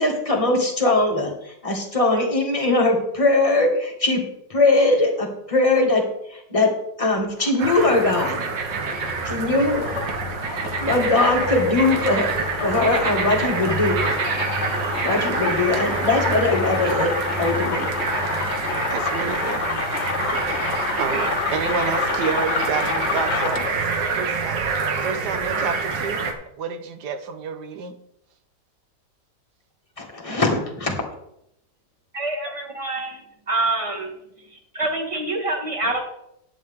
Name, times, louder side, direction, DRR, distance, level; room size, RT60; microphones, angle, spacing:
voice 1, 0.0-4.2 4.5-6.0 6.3-6.7 7.0-8.5 9.2-9.9 10.8-14.0 15.0-17.1 17.4-17.9 20.3-20.4 30.0-31.0, left 2 dB, 20° left, -1 dB, 1.8 m, -21 dB
sound 1, 7.2-23.9, left 5 dB, 50° left, 1.0 m, -29 dB
sound 2, 7.6-26.3, right 4 dB, 85° right, 1.8 m, -26 dB
voice 2, 18.9-19.6 20.3-20.5 20.9-21.3 21.5-23.7 24.2-26.3 26.6-28.0, right 5 dB, 70° right, 9 dB, 1.5 m, -29 dB
voice 3, 32.1-33.2 33.5-34.1 34.5-36.0, right 2 dB, 20° right, 2 dB, 1.5 m, -26 dB
10.5 x 8.7 x 3.6 m, 0.77 s
omnidirectional pair, 1.9 m